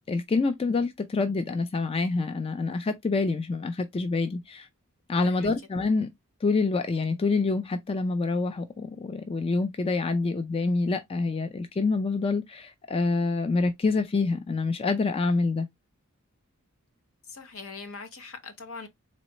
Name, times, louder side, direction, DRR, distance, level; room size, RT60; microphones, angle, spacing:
voice 1, 0.1-4.7 5.1-6.1 6.4-15.7, left 3 dB, 25° left, 0.3 m, -26 dB
voice 2, 5.2-5.5 17.3-18.9, left 4 dB, 65° left, 1.0 m, -41 dB
4.1 x 3.1 x 2.9 m
head